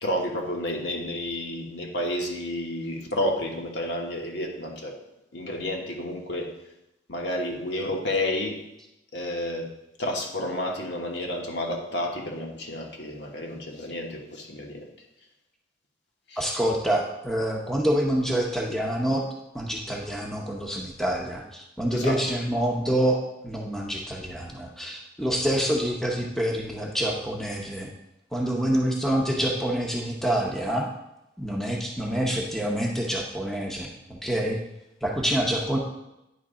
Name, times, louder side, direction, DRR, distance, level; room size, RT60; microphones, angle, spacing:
voice 1, 0.0-5.0 5.3-6.5 7.1-8.6 9.1-9.7 10.0-14.9 16.3-16.4 21.9-22.2, left 1 dB, 65° left, 1 dB, 1.2 m, -30 dB
voice 2, 16.4-19.2 19.5-27.9 28.3-30.9 31.4-34.6 35.0-35.8, right 1 dB, ahead, -1 dB, 0.7 m, -27 dB
9.5 x 3.2 x 4.9 m, 0.88 s
head